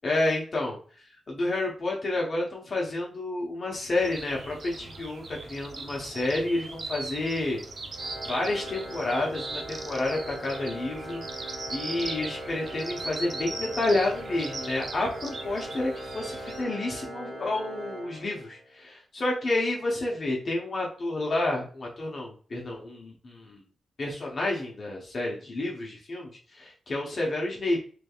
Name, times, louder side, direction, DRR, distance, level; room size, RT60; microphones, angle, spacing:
voice 1, 0.0-7.6 8.2-23.6 24.0-27.8, left 2 dB, 40° left, -2 dB, 0.8 m, -30 dB
sound 1, 4.0-16.6, right 3 dB, 45° right, 0.6 m, -39 dB
Organ, 7.9-18.8, right 1 dB, 80° right, 1.5 m, -40 dB
3.3 x 3.2 x 2.3 m, 0.42 s
wide cardioid pair, 125°, 0 cm